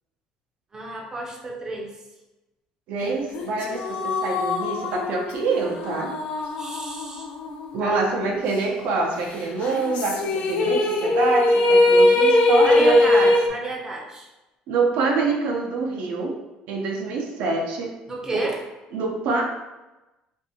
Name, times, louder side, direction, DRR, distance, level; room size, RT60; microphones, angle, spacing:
voice 1, 0.7-2.0 6.6-7.3 7.8-8.1 12.6-14.3 18.1-18.6, right 2 dB, 25° right, -2 dB, 0.6 m, -31 dB
voice 2, 2.9-6.1 7.7-13.3 14.7-16.3 16.7-17.9 18.3-18.4 18.9-19.4, right 3 dB, 70° right, 0 dB, 0.5 m, -25 dB
sound 1, 3.3-8.0 8.3-8.4 9.6-13.5, left 1 dB, 60° left, 0.5 m, -21 dB
2.6 x 2.4 x 2.7 m, 1.0 s
cardioid pair, 105°, 3 cm